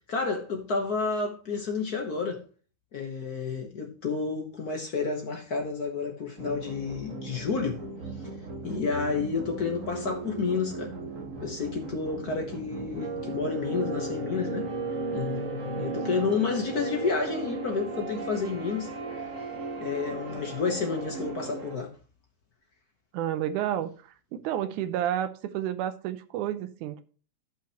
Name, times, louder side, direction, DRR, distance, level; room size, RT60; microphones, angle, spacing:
voice 1, 0.1-2.4 2.9-7.8 8.6-10.9 11.4-14.7 15.1-18.9 19.8-21.9, left 4 dB, 65° left, 0.9 m, -30 dB
sound 1, 6.4-21.8, right 3 dB, 40° right, 1.3 m, -36 dB
voice 2, 23.1-27.0, right 11 dB, 90° right, 2.2 m, -31 dB
13.5 x 5.7 x 2.9 m
omnidirectional pair, 3.4 m